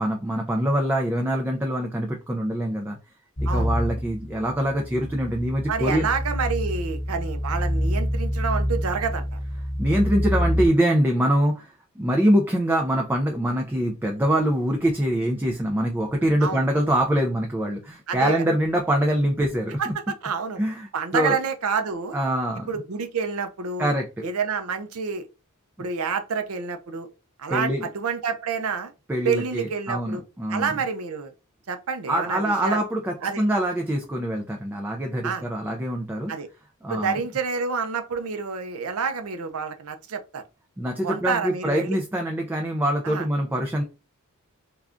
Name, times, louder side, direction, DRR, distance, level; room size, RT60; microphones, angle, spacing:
voice 1, 0.0-3.0 3.5-6.1 9.8-19.9 20.6-21.4 22.1-22.7 23.8-24.3 25.8-25.9 27.5-27.9 29.1-30.7 32.1-36.3 36.8-37.2 40.8-43.8, right 1 dB, 10° right, 0.3 m, -24 dB
sound 1, 3.4-10.7, equal, 40° left, 1.0 m, -27 dB
voice 2, 5.7-9.4 16.4-16.6 18.1-18.4 19.8-19.9 20.2-20.6 20.9-22.2 22.7-23.9 24.2-25.3 25.8-27.1 27.4-28.9 29.2-30.2 30.5-31.3 31.7-32.8 33.2-33.4 35.2-35.4 36.3-36.5 36.9-40.4 41.0-42.0 43.0-43.3, right 5 dB, 75° right, 0.5 m, -28 dB
3.5 x 2.3 x 2.5 m
head